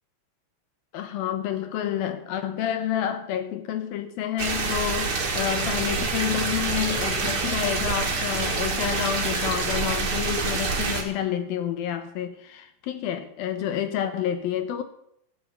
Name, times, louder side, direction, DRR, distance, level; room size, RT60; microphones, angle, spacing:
voice 1, 0.9-14.8, left 10 dB, 75° left, 2.4 m, -29 dB
sound 1, 4.4-11.0, right 4 dB, 40° right, 2.1 m, -27 dB
15.5 x 7.6 x 8.1 m
omnidirectional pair, 5.1 m